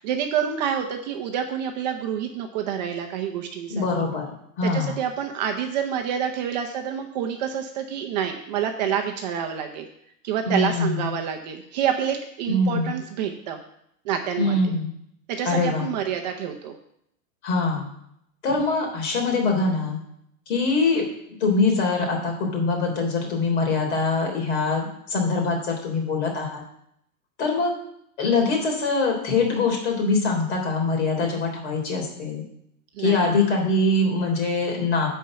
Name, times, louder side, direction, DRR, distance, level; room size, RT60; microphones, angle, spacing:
voice 1, 0.0-3.8 4.6-9.9 10.2-13.6 14.0-14.6 15.3-16.8 33.0-33.3, right 8 dB, 30° right, 4 dB, 0.7 m, -28 dB
voice 2, 3.7-4.3 4.6-5.0 10.5-11.1 12.5-13.0 14.4-14.9 15.5-15.9 17.4-17.9 18.4-20.0 20.5-21.0 21.4-26.6 27.4-27.8 28.2-32.4 33.0-35.1, left 3 dB, 50° left, 1 dB, 3.7 m, -23 dB
10.5 x 4.6 x 7.6 m, 0.73 s
supercardioid pair, 170°, 42 cm